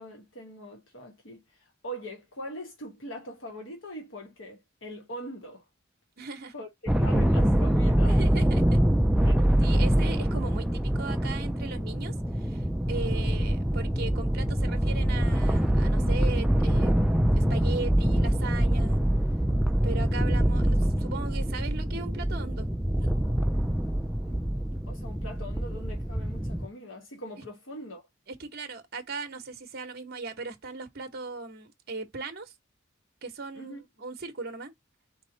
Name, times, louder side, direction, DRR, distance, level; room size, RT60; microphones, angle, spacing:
voice 1, 0.0-5.6 6.5-6.7 7.0-8.2 9.2-9.4 20.1-20.3 24.2-24.4 24.9-28.0 33.5-33.8, equal, 80° left, 1.2 m, -42 dB
voice 2, 6.2-6.5 8.0-8.8 9.6-19.0 19.8-22.7 23.0-23.1 28.3-32.5 33.2-34.7, right 3 dB, 55° right, 0.9 m, -38 dB
sound 1, 6.9-26.7, right 1 dB, 5° right, 0.3 m, -25 dB
4.2 x 3.1 x 3.8 m
head